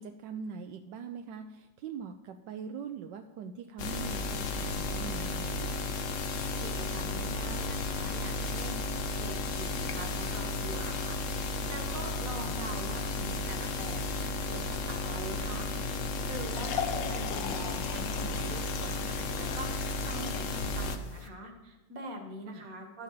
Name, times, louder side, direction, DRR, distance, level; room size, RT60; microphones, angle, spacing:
voice 1, 0.0-6.0 12.4-12.5 22.5-22.7, right 6 dB, 80° right, 6 dB, 1.3 m, -42 dB
sound 1, 3.8-21.0, left 2 dB, 55° left, 1.0 m, -34 dB
voice 2, 6.3-15.7 16.2-23.0, right 1 dB, 50° right, 4 dB, 1.9 m, -43 dB
sound 2, 15.7-21.3, left 8 dB, 80° left, 1.6 m, -40 dB
12.0 x 5.7 x 7.3 m, 1.1 s
omnidirectional pair, 2.0 m